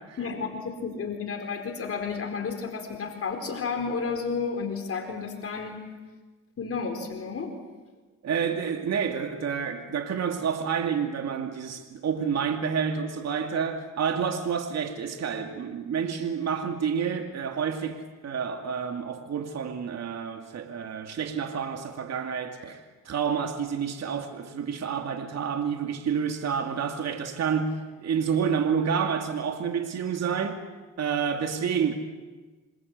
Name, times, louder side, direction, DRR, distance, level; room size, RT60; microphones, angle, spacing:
voice 1, 0.2-5.9 6.6-7.5, left 5 dB, 50° left, 4.4 m, -32 dB
voice 2, 8.2-30.6 31.0-31.9, right 7 dB, 60° right, 2.5 m, -29 dB
27.5 x 26.5 x 8.2 m
cardioid pair, 90°, 30 cm